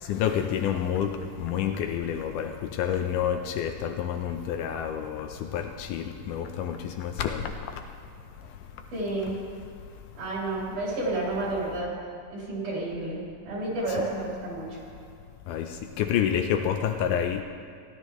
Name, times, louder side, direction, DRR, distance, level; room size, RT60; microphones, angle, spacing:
voice 1, 0.0-7.8 15.5-17.4, left 9 dB, 80° left, 5 dB, 2.0 m, -29 dB
voice 2, 8.9-9.3 10.1-11.9 12.3-13.2 13.4-14.8, right 2 dB, 65° right, -6 dB, 5.0 m, -30 dB
17.0 x 11.5 x 3.1 m, 2.3 s
omnidirectional pair, 3.9 m